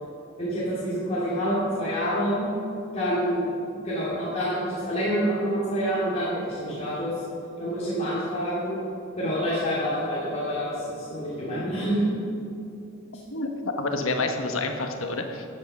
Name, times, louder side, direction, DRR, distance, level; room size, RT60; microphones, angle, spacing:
voice 1, 0.4-2.4 2.9-3.5 3.8-7.1 7.6-8.8 9.2-12.1 13.1-13.2, equal, 35° left, -10 dB, 3.0 m, -27 dB
voice 2, 13.3-15.5, left 2 dB, 80° left, 4 dB, 1.4 m, -28 dB
15.0 x 8.1 x 6.0 m, 2.7 s
head